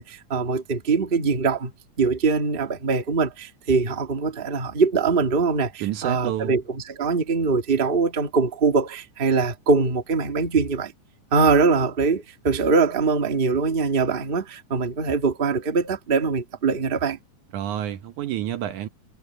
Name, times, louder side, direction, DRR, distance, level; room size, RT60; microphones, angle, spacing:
voice 1, 0.0-1.7 2.0-10.9 11.3-17.2, right 4 dB, 25° right, 1.4 m, -22 dB
voice 2, 5.8-6.6 17.5-18.9, right 11 dB, 70° right, 2.3 m, -29 dB
omnidirectional pair, 3.8 m